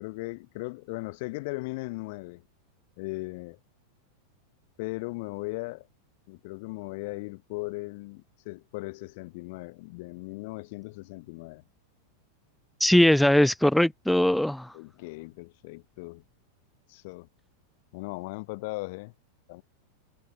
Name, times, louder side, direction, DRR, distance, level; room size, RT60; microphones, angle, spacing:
voice 1, 0.0-2.4 3.0-3.6 4.8-5.9 6.3-11.6 14.7-16.2 16.9-17.3 17.9-19.1 19.5-19.6, left 25 dB, 50° left, 0.8 m, -38 dB
voice 2, 12.8-14.7, left 1 dB, ahead, 0.3 m, -20 dB
figure-of-eight pair, 90°, 0 cm